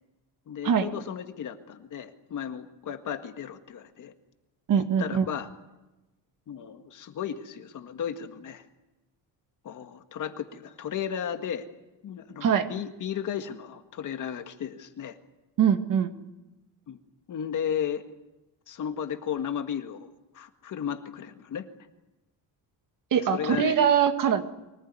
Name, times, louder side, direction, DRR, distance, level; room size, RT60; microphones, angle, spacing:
voice 1, 0.5-4.1 4.8-5.5 6.5-8.6 9.6-11.7 12.0-15.2 16.9-17.0 17.3-18.0 18.7-21.7 23.1-23.8, left 8 dB, 45° left, 7 dB, 1.8 m, -34 dB
voice 2, 4.7-5.3 12.4-12.7 15.6-16.1 23.1-24.4, right 8 dB, 50° right, 8 dB, 1.9 m, -22 dB
24.0 x 19.5 x 9.6 m, 1.0 s
cardioid pair, 175°, 42 cm